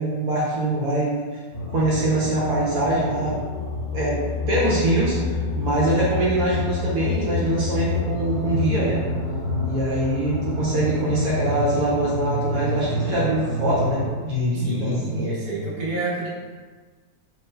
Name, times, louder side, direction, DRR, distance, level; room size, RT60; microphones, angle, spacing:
voice 1, 0.0-1.4 1.7-3.4 3.9-4.2 4.5-9.0 9.6-15.3, right 1 dB, 70° right, -7 dB, 1.2 m, -23 dB
sound 1, 1.5-14.1, left 2 dB, 70° left, 1.5 m, -28 dB
voice 2, 14.6-16.3, right 2 dB, 40° right, -9 dB, 1.0 m, -28 dB
3.2 x 3.0 x 2.3 m, 1.4 s
omnidirectional pair, 1.6 m